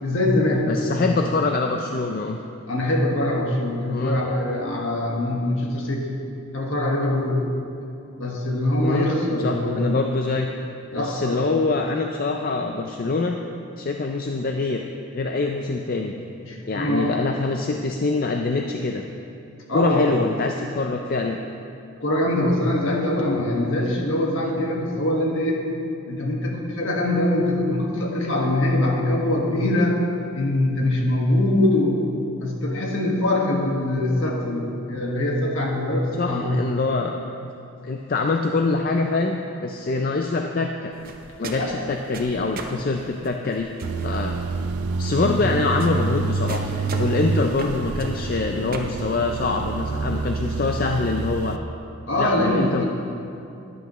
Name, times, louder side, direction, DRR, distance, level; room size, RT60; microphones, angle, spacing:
voice 1, 0.0-1.1 2.7-6.1 6.5-7.5 8.2-9.8 10.9-11.5 16.4-17.2 19.7-20.1 22.0-25.6 26.1-30.0 30.3-32.0 32.4-36.6 41.5-41.7 44.2-44.4 45.2-45.4 52.1-52.9, left 1 dB, 60° left, -1 dB, 1.6 m, -23 dB
voice 2, 0.7-2.4 3.9-4.2 8.8-9.1 9.4-10.5 10.9-13.4 13.8-14.8 15.1-16.1 16.7-19.0 19.7-21.4 36.2-37.1 37.8-40.9 41.4-43.7 44.0-44.4 45.0-51.6 52.2-52.8, left 3 dB, 40° left, 3 dB, 0.4 m, -24 dB
sound 1, 40.9-48.8, right 3 dB, 40° right, 0.7 m, -40 dB
sound 2, 43.8-51.6, right 4 dB, 85° right, 0.5 m, -27 dB
13.5 x 11.0 x 3.1 m, 2.7 s
head